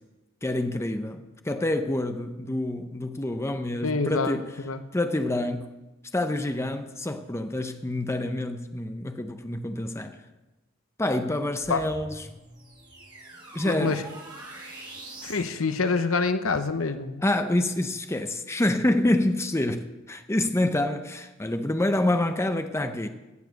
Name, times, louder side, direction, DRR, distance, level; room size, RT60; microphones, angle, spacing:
voice 1, 0.4-4.5 4.9-5.7 6.1-10.2 11.0-12.2 13.5-14.0 17.2-23.1, left 1 dB, 15° left, 0.6 m, -27 dB
voice 2, 3.8-4.4 4.6-4.8 11.7-11.8 13.6-14.0 15.2-17.2, left 4 dB, 70° left, 0.9 m, -26 dB
sound 1, 11.6-15.5, right 2 dB, 20° right, 3.6 m, -44 dB
16.5 x 7.2 x 6.6 m
head